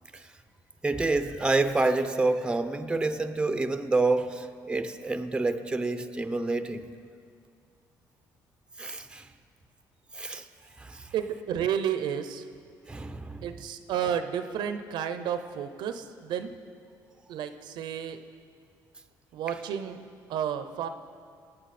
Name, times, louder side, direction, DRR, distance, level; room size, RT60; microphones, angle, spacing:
voice 1, 0.8-6.9 8.8-9.3 10.1-10.5 10.8-11.1 12.9-13.5, right 3 dB, 10° right, 10 dB, 0.6 m, -28 dB
voice 2, 11.1-12.5 13.4-16.5 17.3-18.2 19.3-20.0 20.3-20.9, right 9 dB, 75° right, 10 dB, 0.7 m, -31 dB
20.0 x 8.7 x 4.3 m, 2.3 s
cardioid pair, 100°, 8 cm